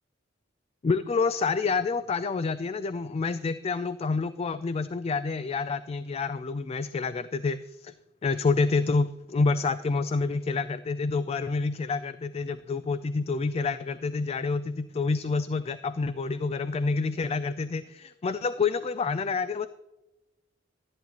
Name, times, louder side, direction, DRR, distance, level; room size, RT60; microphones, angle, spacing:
voice 1, 0.8-7.9 8.2-19.7, left 4 dB, 30° left, 13 dB, 0.3 m, -28 dB
12.5 x 10.5 x 2.9 m, 0.99 s
head